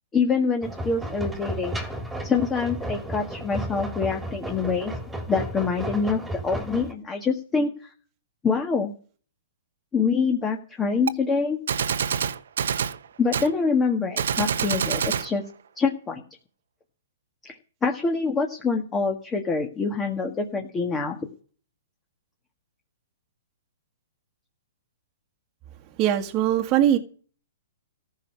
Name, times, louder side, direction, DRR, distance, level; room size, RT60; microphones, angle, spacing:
voice 1, 0.1-1.8 2.2-4.9 5.3-7.7 8.4-8.9 9.9-11.6 13.2-15.4 15.8-16.2 17.4-21.2, left 5 dB, 15° left, 1.7 m, -25 dB
sound 1, 0.6-6.9, right 1 dB, 5° right, 2.8 m, -33 dB
Gunshot gunfire, 11.1-11.2 11.7-13.0 13.3-13.5 14.2-15.3, right 7 dB, 75° right, 1.1 m, -26 dB
voice 2, 26.0-27.0, right 11 dB, 25° right, 1.6 m, -21 dB
15.0 x 6.4 x 9.7 m
hypercardioid pair, 150°, 0 cm